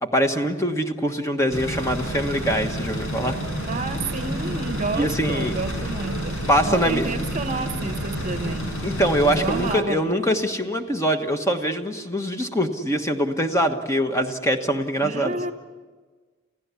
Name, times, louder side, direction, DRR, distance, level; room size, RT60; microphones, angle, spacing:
voice 1, 0.0-3.4 4.9-5.6 6.5-7.0 8.8-15.4, equal, 15° left, 5 dB, 1.3 m, -23 dB
sound 1, 1.5-9.8, equal, 85° left, 5.4 m, -30 dB
sound 2, 1.5-8.6, right 3 dB, 60° right, 0.8 m, -36 dB
voice 2, 3.6-8.7 9.2-10.2 15.0-15.5, right 3 dB, 35° right, 9 dB, 1.0 m, -30 dB
28.5 x 16.0 x 8.3 m, 1.4 s
head